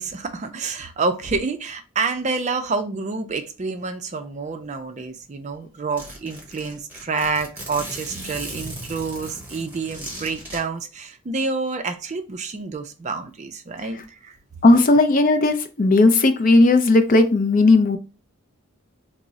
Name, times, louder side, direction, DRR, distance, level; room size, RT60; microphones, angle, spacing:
voice 1, 0.0-14.4, right 4 dB, 35° right, 0.4 m, -28 dB
Zipper (clothing), 5.2-5.3 5.5-5.6 6.0-10.6, right 1 dB, 10° right, 1.0 m, -37 dB
voice 2, 14.6-18.0, left 2 dB, 40° left, 0.4 m, -16 dB
3.5 x 2.0 x 4.0 m
head